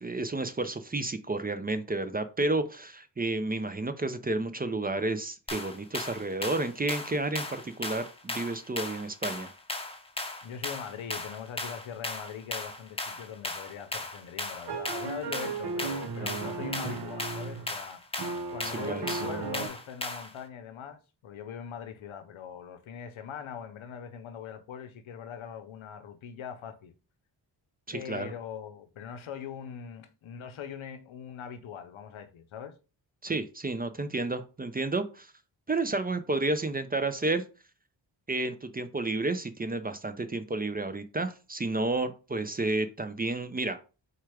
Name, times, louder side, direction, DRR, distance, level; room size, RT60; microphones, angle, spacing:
voice 1, 0.0-9.5 18.9-19.2 27.9-28.3 33.2-35.3 35.7-37.4 38.3-43.8, right 2 dB, 20° right, 0.5 m, -31 dB
sound 1, 5.5-20.4, left 2 dB, 10° left, 0.8 m, -37 dB
voice 2, 10.4-18.0 18.5-26.9 27.9-32.8, left 8 dB, 90° left, 0.7 m, -41 dB
sound 2, 14.7-17.8 18.2-19.7, right 4 dB, 55° right, 0.8 m, -35 dB
4.3 x 2.4 x 4.8 m
cardioid pair, 60°, 46 cm